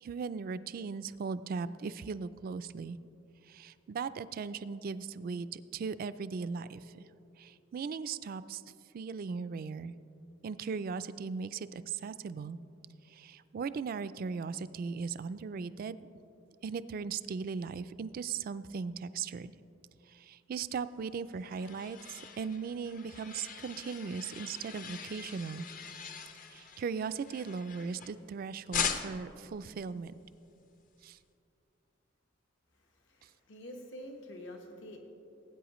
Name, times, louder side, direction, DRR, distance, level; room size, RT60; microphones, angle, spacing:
voice 1, 0.0-3.0 3.5-7.0 7.4-8.6 8.9-9.9 10.4-12.6 13.1-16.0 16.6-19.5 20.1-25.7 26.5-30.1 31.0-31.2, right 5 dB, 50° right, 14 dB, 0.3 m, -38 dB
sound 1, 21.0-28.3 28.7-29.4, left 6 dB, 45° left, 0.6 m, -41 dB
voice 2, 32.7-35.0, equal, 70° left, 2 dB, 1.3 m, -47 dB
18.0 x 8.7 x 3.0 m, 2.7 s
head